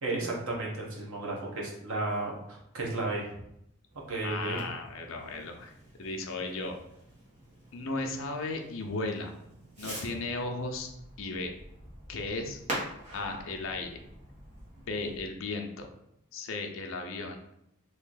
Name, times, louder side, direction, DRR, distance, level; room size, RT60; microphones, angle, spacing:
voice 1, 0.0-3.2 4.1-4.6, right 2 dB, 70° right, -2 dB, 1.0 m, -33 dB
Fireworks, 3.9-15.3, right 1 dB, 30° right, 1.2 m, -45 dB
voice 2, 4.2-5.7 6.0-6.8 7.7-9.3 9.8-10.9 11.2-11.5 12.1-12.6 13.1-14.1 14.9-15.9 16.3-17.4, left 3 dB, 60° left, 3 dB, 0.6 m, -35 dB
3.1 x 2.7 x 3.9 m, 0.77 s
head